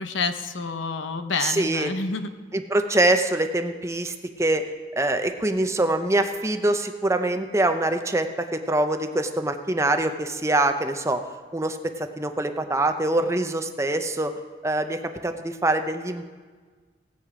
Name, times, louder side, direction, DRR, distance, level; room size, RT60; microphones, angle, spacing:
voice 1, 0.0-2.3, left 4 dB, 90° left, 9 dB, 0.8 m, -28 dB
voice 2, 1.4-1.9 2.5-4.6 5.0-11.2 11.5-14.3 14.6-16.2, right 2 dB, 15° right, 7 dB, 0.7 m, -24 dB
17.0 x 8.6 x 5.0 m, 1.5 s
head